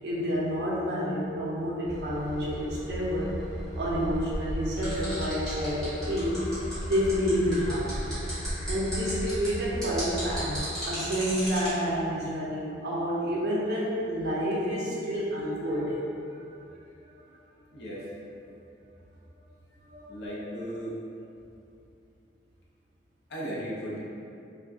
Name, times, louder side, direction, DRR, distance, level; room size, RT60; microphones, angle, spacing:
voice 1, 0.0-3.4 3.8-8.0 8.6-16.0 19.8-20.2, equal, 65° right, -6 dB, 0.5 m, -29 dB
Train / Engine, 1.9-10.6, equal, 60° left, 1.5 m, -36 dB
sound 1, 4.8-11.7, equal, 5° left, 1.2 m, -36 dB
voice 2, 17.7-18.1 20.1-20.9 23.3-24.0, equal, 80° left, -7 dB, 0.6 m, -36 dB
2.5 x 2.1 x 3.4 m, 2.6 s
head